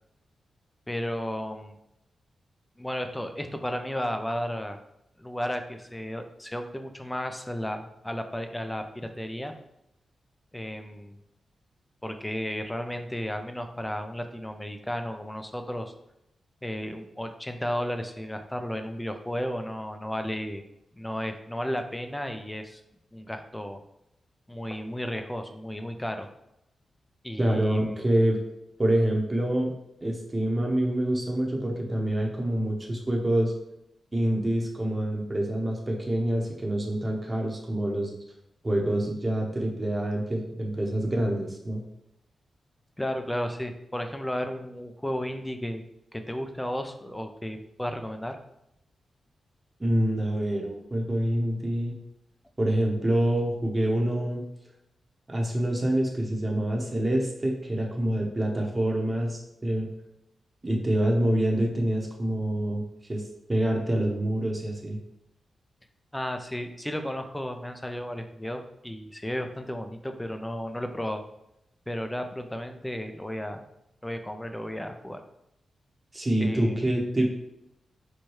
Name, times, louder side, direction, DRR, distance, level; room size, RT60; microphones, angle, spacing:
voice 1, 0.9-1.8 2.8-4.8 5.2-9.5 10.5-11.1 12.0-15.9 16.6-20.6 20.9-22.8 23.1-23.8 24.5-26.3 27.2-28.0 43.0-45.8 46.1-48.4 66.1-71.2 71.9-73.6 74.0-75.2 76.4-76.8, equal, 10° left, 6 dB, 0.4 m, -33 dB
voice 2, 27.4-28.4 28.8-29.7 30.0-33.5 34.1-38.1 38.6-41.8 49.8-51.9 52.6-54.4 55.3-59.9 60.6-62.8 63.1-63.2 63.5-65.0 76.1-77.3, right 1 dB, 25° right, -1 dB, 0.8 m, -26 dB
4.5 x 2.2 x 3.1 m, 0.83 s
cardioid pair, 60°, 0 cm